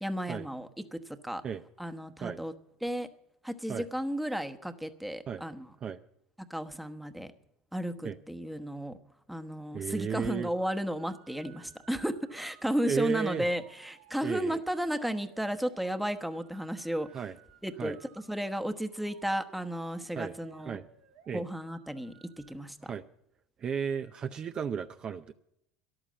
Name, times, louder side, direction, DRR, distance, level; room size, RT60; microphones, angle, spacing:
voice 1, 0.0-1.4 1.8-2.5 2.8-3.1 3.4-5.7 6.5-7.3 7.7-9.0 9.3-17.1 17.6-18.0 18.3-20.8 21.3-22.1 22.5-22.9, equal, 5° right, 8 dB, 1.1 m, -33 dB
voice 2, 9.7-10.5 12.8-13.5 14.2-14.6 17.1-17.4 17.8-18.0 20.1-20.3 20.6-20.8 21.3-21.4 22.8-23.0 23.6-25.3, right 7 dB, 35° right, 9 dB, 0.6 m, -34 dB
sound 1, 10.1-22.5, right 9 dB, 85° right, 1.8 m, -59 dB
13.5 x 11.0 x 7.5 m, 0.77 s
supercardioid pair, 90°, 2 cm